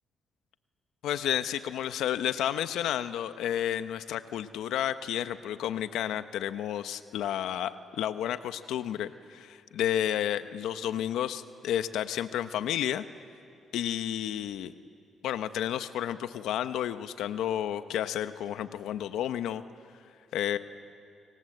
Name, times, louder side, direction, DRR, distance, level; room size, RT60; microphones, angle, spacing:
voice 1, 1.0-13.0 13.7-14.7 15.2-19.6 20.3-20.6, left 11 dB, 85° left, 11 dB, 1.0 m, -31 dB
28.5 x 26.5 x 7.9 m, 2.6 s
cardioid pair, 90°, 0 cm